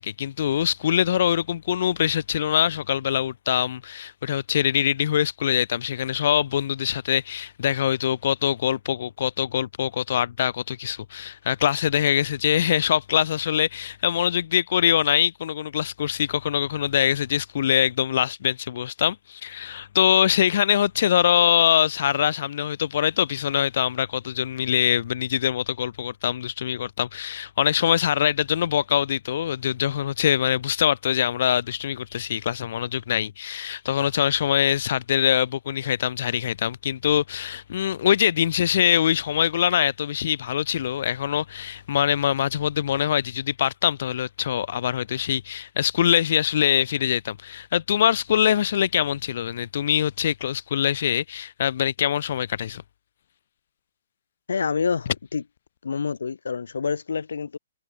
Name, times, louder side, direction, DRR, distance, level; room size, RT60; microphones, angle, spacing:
voice 1, 0.0-52.8, left 10 dB, 60° left, 1.5 m, -23 dB
voice 2, 54.5-55.4 55.8-57.6, left 5 dB, 90° left, 2.1 m, -27 dB
hypercardioid pair, 150°, 0 cm